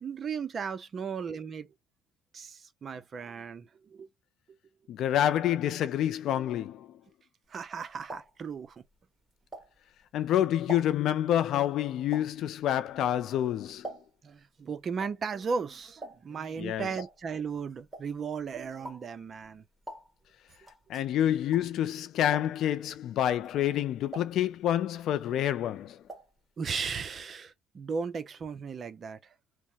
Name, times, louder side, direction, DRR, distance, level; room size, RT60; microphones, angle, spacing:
voice 1, 0.0-1.7 2.3-4.1 7.5-8.8 14.2-19.6 20.9-21.0 26.6-29.3, right 5 dB, 45° right, 0.5 m, -36 dB
voice 2, 4.9-6.9 10.1-13.9 16.6-16.9 20.9-26.0, left 11 dB, 70° left, 0.3 m, -28 dB
sound 1, 7.5-10.1 10.4-14.4 14.6-21.9 22.2-22.8 23.3-25.0 25.3-26.4 26.7-26.8 27.0-27.1, right 1 dB, 10° right, 1.5 m, -46 dB
3.0 x 2.0 x 2.8 m
cardioid pair, 95°, 0 cm